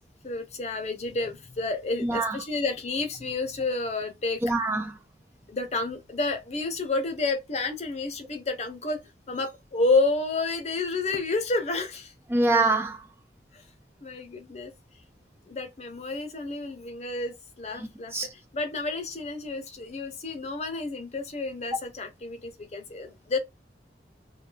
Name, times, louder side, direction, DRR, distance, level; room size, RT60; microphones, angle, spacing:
voice 1, 0.2-4.4 5.5-12.1 13.5-13.7 14.0-14.7 15.5-23.4, left 3 dB, 40° left, 0.7 m, -30 dB
voice 2, 2.0-2.4 4.4-4.9 12.3-13.0 17.8-18.3, right 2 dB, 15° right, 0.3 m, -25 dB
2.5 x 2.2 x 3.9 m
head